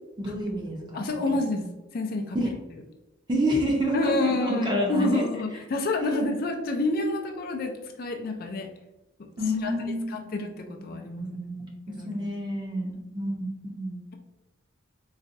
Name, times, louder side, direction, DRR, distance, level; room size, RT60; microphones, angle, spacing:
voice 1, 0.2-1.0 1.3-1.4 2.3-2.5 3.3-5.2 6.0-6.2 9.4-10.3 10.8-10.9 11.2-11.6 12.0-14.0, equal, 25° right, -2 dB, 0.7 m, -28 dB
voice 2, 0.9-2.4 3.9-8.7 9.6-9.7 10.1-11.4 12.0-12.3, left 2 dB, 45° left, 3 dB, 0.4 m, -28 dB
4.0 x 2.3 x 2.6 m, 1.0 s
head